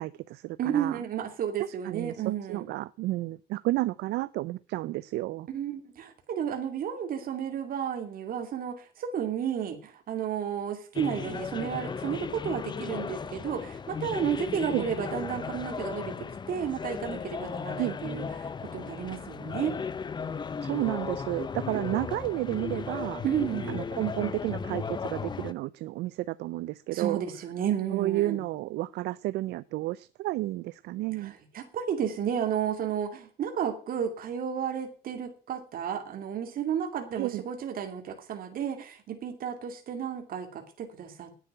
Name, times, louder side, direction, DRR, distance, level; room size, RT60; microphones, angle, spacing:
voice 1, 0.0-1.0 1.8-5.5 14.7-14.9 17.8-18.0 20.6-23.2 23.7-27.2 27.9-31.3 37.2-37.4, right 17 dB, 80° right, 17 dB, 0.5 m, -31 dB
voice 2, 0.6-2.7 5.5-16.1 16.5-19.8 23.2-23.8 26.9-28.4 31.2-41.3, right 8 dB, 60° right, 5 dB, 2.4 m, -32 dB
sound 1, 10.9-25.5, left 5 dB, 25° left, 0.7 m, -36 dB
10.0 x 8.3 x 8.7 m, 0.40 s
cardioid pair, 110°, 17 cm